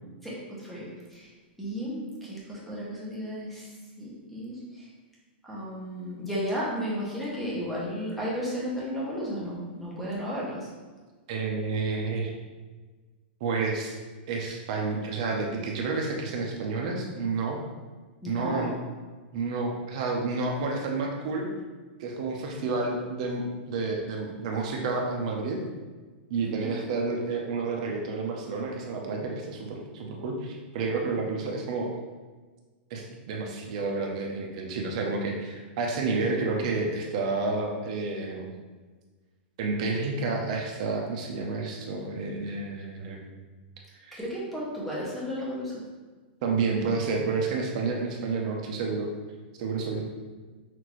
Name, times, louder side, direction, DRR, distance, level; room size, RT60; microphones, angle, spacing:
voice 1, 0.2-1.3 1.6-3.7 4.0-4.5 5.5-10.6 18.2-18.7 26.4-26.7 44.2-45.7, equal, ahead, -6 dB, 0.7 m, -33 dB
voice 2, 11.3-12.3 13.4-14.0 14.3-17.6 18.3-18.7 19.3-21.5 22.0-25.6 26.3-31.9 32.9-38.5 39.6-43.2 44.0-44.2 46.4-49.1 49.6-50.0, right 3 dB, 35° right, 1 dB, 0.6 m, -30 dB
5.9 x 2.5 x 3.0 m, 1.4 s
supercardioid pair, 180°, 6 cm